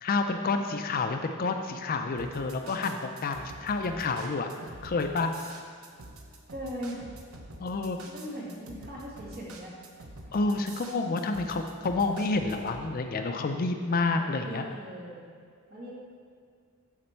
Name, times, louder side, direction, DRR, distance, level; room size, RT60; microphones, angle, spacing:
voice 1, 0.0-4.5 4.8-5.3 7.6-8.0 10.3-14.6, left 3 dB, 40° left, 6 dB, 0.4 m, -29 dB
sound 1, 2.2-12.8, right 2 dB, 75° right, 0.9 m, -47 dB
voice 2, 6.5-7.0 8.0-9.7 14.1-15.2 15.7-15.9, equal, 45° right, -6 dB, 2.2 m, -40 dB
12.0 x 4.3 x 4.4 m, 2.1 s
head